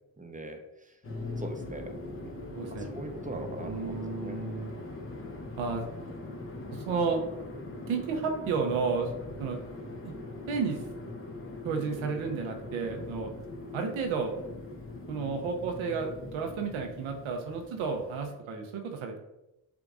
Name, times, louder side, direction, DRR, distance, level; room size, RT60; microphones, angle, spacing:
voice 1, 0.2-0.9 1.4-1.9 2.2-2.3 2.7-5.3, right 1 dB, 15° right, 5 dB, 0.8 m, -42 dB
sound 1, 1.0-18.3, left 2 dB, 30° left, 0.9 m, -41 dB
voice 2, 2.5-2.9 3.6-4.7 5.6-5.8 6.7-7.2 7.9-9.1 9.4-9.6 10.0-10.1 10.5-10.8 11.6-13.3 13.7-14.3 15.1-19.2, right 5 dB, 85° right, 3 dB, 0.8 m, -32 dB
7.0 x 3.0 x 2.5 m, 0.90 s
supercardioid pair, 55°, 46 cm